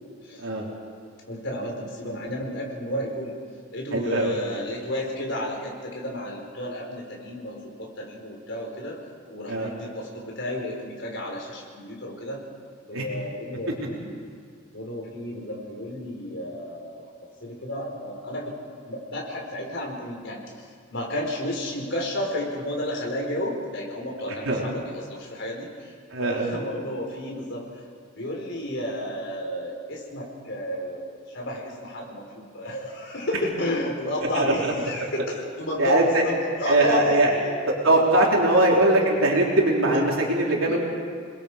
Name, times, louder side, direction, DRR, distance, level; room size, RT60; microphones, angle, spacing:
voice 1, 1.3-3.3 3.7-9.0 9.3-12.4 12.9-14.2 14.7-17.0 17.4-18.5 18.9-25.9 26.2-27.8 28.2-37.5 38.6-39.1 39.9-40.0 40.6-40.8, left 1 dB, 60° left, -1 dB, 4.9 m, -32 dB
voice 2, 3.9-4.3 9.5-9.7 12.9-13.0 24.5-24.6 26.1-26.5 34.4-34.7 35.0-35.1 35.8-36.2 36.7-37.3 37.8-40.8, right 2 dB, 85° right, -2 dB, 3.7 m, -21 dB
28.5 x 21.0 x 5.1 m, 2.1 s
head